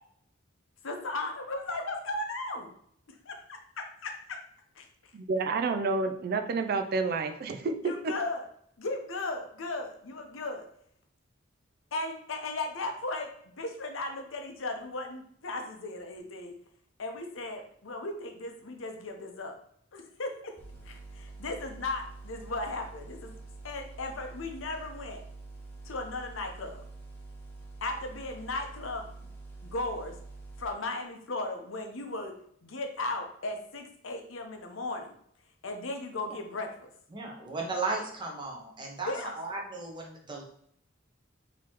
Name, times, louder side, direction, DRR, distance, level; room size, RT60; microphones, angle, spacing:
voice 1, 0.8-2.7 3.1-4.4 4.8-4.9 7.8-8.5 8.8-10.7 11.9-16.6 17.0-19.6 19.9-20.6 20.8-23.3 23.6-25.2 25.8-26.8 27.8-29.3 29.6-30.2 30.6-32.3 32.6-35.2 35.6-36.9 39.1-39.3, left 2 dB, 75° left, 4 dB, 0.8 m, -36 dB
voice 2, 5.1-8.1, right 4 dB, 50° right, 7 dB, 0.4 m, -29 dB
sound 1, 20.6-30.7, right 3 dB, 10° left, 0.9 m, -46 dB
voice 3, 37.1-40.4, right 3 dB, 25° right, -1 dB, 1.0 m, -35 dB
4.0 x 3.0 x 4.4 m, 0.66 s
head